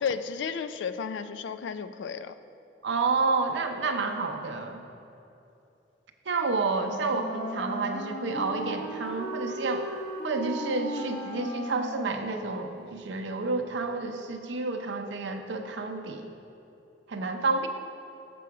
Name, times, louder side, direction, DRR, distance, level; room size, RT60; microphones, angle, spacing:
voice 1, 0.0-2.3, left 6 dB, 80° left, 12 dB, 0.3 m, -33 dB
voice 2, 2.8-4.8 6.3-9.8 10.2-16.3 17.1-17.7, right 3 dB, 80° right, 4 dB, 0.6 m, -30 dB
Wind instrument woodwind instrument, 6.8-12.7, equal, 40° left, 1.0 m, -36 dB
6.8 x 6.1 x 4.7 m, 2.8 s
head